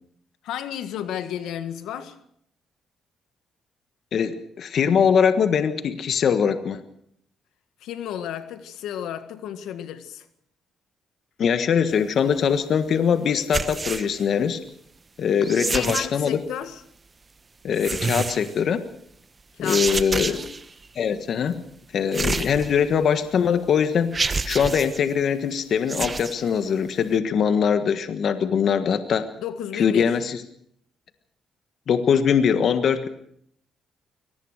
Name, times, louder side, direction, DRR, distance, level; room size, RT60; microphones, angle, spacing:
voice 1, 0.4-2.1 7.8-10.2 15.5-16.8 19.6-20.5 29.4-30.1, left 10 dB, 85° left, 11 dB, 1.7 m, -32 dB
voice 2, 4.1-6.8 11.4-14.6 15.2-16.4 17.6-18.8 19.6-20.4 20.9-21.6 21.9-24.2 24.4-29.3 29.7-30.4 31.9-33.1, left 7 dB, 60° left, 10 dB, 1.5 m, -22 dB
sound 1, 13.4-14.2 15.4-16.3 17.7-18.6 19.6-20.6 22.1-23.0 23.6-23.7 24.1-25.0 25.8-26.4, right 4 dB, 30° right, 1.3 m, -28 dB
23.0 x 18.5 x 6.5 m, 0.68 s
cardioid pair, 90°, 0 cm